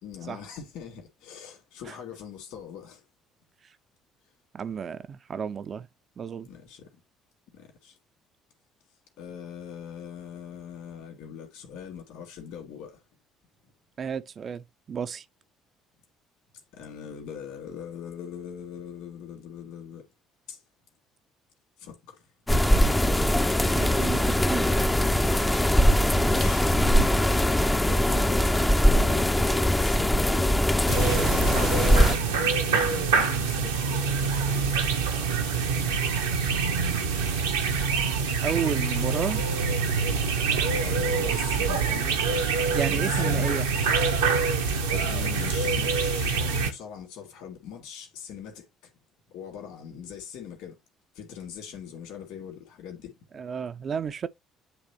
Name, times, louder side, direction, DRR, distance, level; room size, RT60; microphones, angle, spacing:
voice 1, 0.0-3.0 6.4-6.9 7.5-8.0 9.2-13.0 16.7-20.0 20.5-20.6 21.8-22.3 26.1-26.8 27.9-28.5 28.9-30.6 31.8-34.8 39.6-39.7 40.5-43.5 44.7-48.9 49.3-50.8 51.1-53.4, left 8 dB, 60° left, 2.2 m, -42 dB
voice 2, 4.5-5.9 6.2-6.5 14.0-15.2 23.7-24.7 38.4-39.4 42.7-43.7 53.3-54.3, right 7 dB, 40° right, 0.5 m, -32 dB
sound 1, 22.5-32.2, equal, 10° left, 0.6 m, -21 dB
sound 2, 30.9-46.7, right 5 dB, 75° right, 1.0 m, -25 dB
9.9 x 3.3 x 3.0 m
figure-of-eight pair, 50°, 0 cm